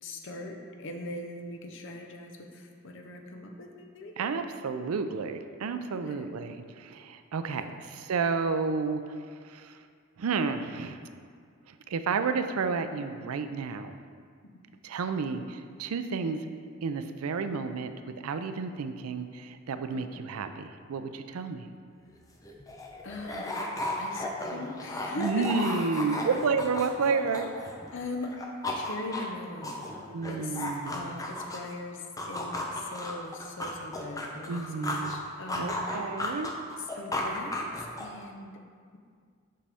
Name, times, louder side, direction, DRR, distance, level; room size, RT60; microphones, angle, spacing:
voice 1, 0.0-4.2 6.1-6.3 7.6-7.9 19.9-20.1 23.0-23.6 24.0-25.5 26.0-26.2 27.9-28.3 28.7-29.9 30.3-36.3 36.7-38.5, left 2 dB, 60° left, 2 dB, 0.7 m, -41 dB
voice 2, 4.2-9.2 9.4-9.8 10.2-11.0 11.7-13.9 14.8-16.4 16.8-17.9 18.2-21.7 25.2-27.5 30.1-31.2 34.5-35.1 35.6-36.5, right 5 dB, 85° right, 9 dB, 0.4 m, -31 dB
sound 1, 22.1-22.2 22.4-27.9 28.2-31.7 32.2-35.2 35.5-38.2, left 1 dB, 15° left, 0.6 m, -35 dB
7.5 x 5.4 x 3.5 m, 2.1 s
head